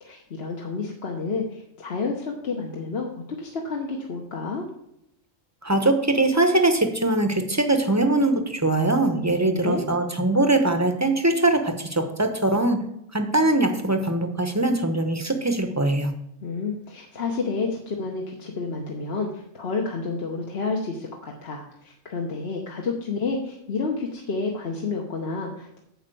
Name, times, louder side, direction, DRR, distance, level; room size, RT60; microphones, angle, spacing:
voice 1, 0.0-4.7 9.4-9.9 16.4-25.8, left 4 dB, 50° left, 0 dB, 1.3 m, -30 dB
voice 2, 5.6-12.8 13.1-16.1, right 2 dB, 15° right, 6 dB, 0.9 m, -22 dB
8.8 x 5.6 x 7.7 m, 0.79 s
omnidirectional pair, 1.3 m